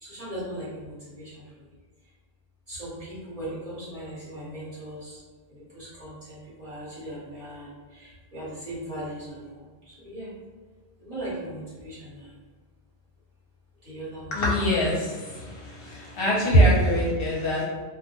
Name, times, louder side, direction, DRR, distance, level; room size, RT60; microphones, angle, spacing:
voice 1, 0.0-1.3 2.7-5.2 5.7-7.7 7.9-9.6 10.0-10.3 11.0-12.1 13.8-14.3, right 1 dB, 35° right, -10 dB, 1.0 m, -38 dB
voice 2, 14.3-14.9 16.2-17.7, left 2 dB, 65° left, -4 dB, 0.8 m, -24 dB
2.2 x 2.1 x 2.9 m, 1.4 s
omnidirectional pair, 1.1 m